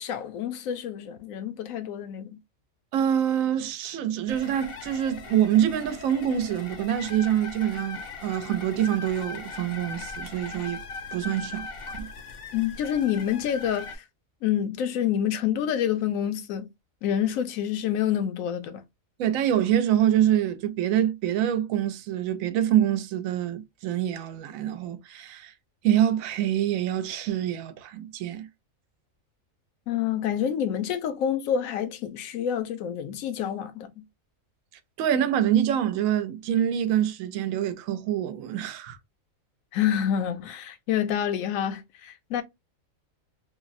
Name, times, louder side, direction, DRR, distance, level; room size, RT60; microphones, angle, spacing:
voice 1, 0.0-2.4 12.5-14.1 14.4-16.7 17.0-18.8 29.9-34.0 39.7-42.4, left 9 dB, 80° left, 1.0 m, -28 dB
voice 2, 2.9-10.8 11.1-12.1 19.2-25.5 25.8-28.5 35.0-39.0, right 10 dB, 80° right, 1.0 m, -25 dB
sound 1, 4.3-14.0, left 4 dB, 55° left, 0.7 m, -40 dB
3.8 x 2.0 x 2.5 m
omnidirectional pair, 1.4 m